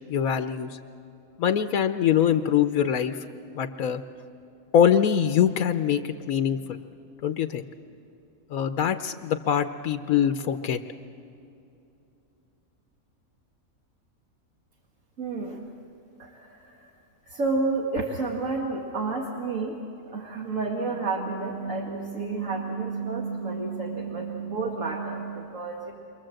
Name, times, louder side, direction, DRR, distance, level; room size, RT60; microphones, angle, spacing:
voice 1, 0.1-0.8 1.4-3.2 3.5-4.0 4.7-6.8 7.2-7.6 8.5-10.8, left 9 dB, 85° left, 8 dB, 1.2 m, -23 dB
voice 2, 15.2-15.7 16.2-16.9 17.3-19.8 20.1-25.9, right 3 dB, 65° right, -1 dB, 2.2 m, -30 dB
28.0 x 24.0 x 7.7 m, 2.8 s
omnidirectional pair, 1.5 m